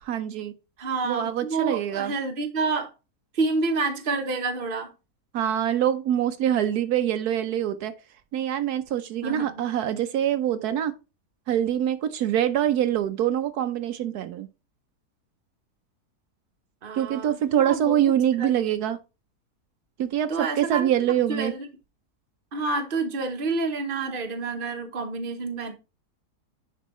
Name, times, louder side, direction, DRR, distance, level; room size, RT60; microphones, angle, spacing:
voice 1, 0.0-0.5 1.0-2.1 5.3-7.9 8.3-10.9 11.5-14.5 17.0-19.0 20.0-21.5, right 10 dB, 80° right, 1.2 m, -24 dB
voice 2, 0.8-2.9 3.3-4.9 9.2-9.6 16.8-18.0 18.4-18.6 20.3-20.9 21.3-21.7 22.5-25.7, right 3 dB, 40° right, 1.2 m, -28 dB
10.0 x 4.6 x 3.1 m
omnidirectional pair, 1.7 m